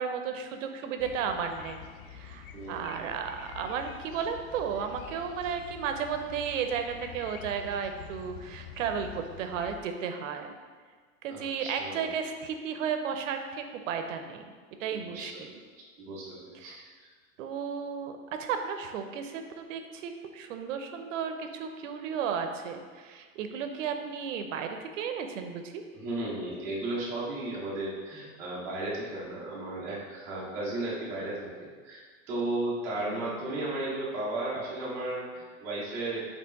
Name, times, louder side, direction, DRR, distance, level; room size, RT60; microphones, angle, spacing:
voice 1, 0.0-10.5 11.2-14.5 14.8-15.5 16.5-16.9 17.4-25.8 33.0-33.4, right 7 dB, 65° right, 6 dB, 0.6 m, -34 dB
sound 1, 1.0-9.8, left 8 dB, 90° left, 0.5 m, -47 dB
voice 2, 2.5-2.9 11.3-12.1 14.9-15.3 16.0-16.7 17.0-17.1 25.9-36.2, right 2 dB, 5° right, -9 dB, 0.3 m, -35 dB
4.5 x 3.0 x 4.0 m, 1.5 s
supercardioid pair, 155°, 41 cm